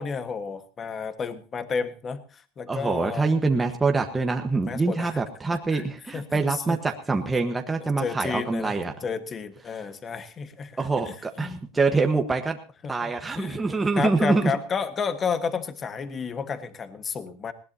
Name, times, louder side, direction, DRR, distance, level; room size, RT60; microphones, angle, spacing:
voice 1, 0.0-3.4 4.7-5.2 5.7-6.8 7.8-10.8 11.0-11.6 12.8-13.1 13.4-13.7 14.0-17.5, left 5 dB, 25° left, 10 dB, 1.5 m, -32 dB
voice 2, 2.7-8.9 10.8-12.6 12.9-14.5, right 3 dB, 10° right, 3 dB, 1.3 m, -25 dB
20.0 x 17.5 x 2.9 m, 0.34 s
supercardioid pair, 125°, 0 cm